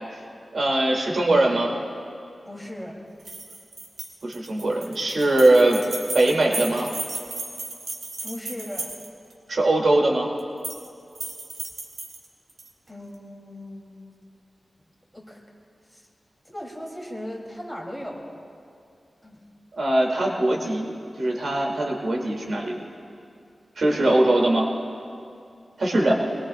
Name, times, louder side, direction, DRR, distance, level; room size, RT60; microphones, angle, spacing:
voice 1, 0.5-1.7 4.2-5.8 6.1-6.9 9.5-10.3 19.8-20.9 21.2-22.8 23.8-24.6 25.8-26.1, right 1 dB, 70° right, -1 dB, 2.7 m, -21 dB
voice 2, 2.4-3.0 8.2-8.9 12.9-14.1 15.1-15.4 15.9-16.0 16.4-18.4 19.2-19.4 23.9-24.2, left 1 dB, 5° left, -2 dB, 3.1 m, -37 dB
sound 1, 3.2-9.3 10.4-10.9 11.1-12.7, right 3 dB, 85° right, 1.8 m, -35 dB
24.0 x 21.5 x 2.4 m, 2.4 s
wide cardioid pair, 85°, 0 cm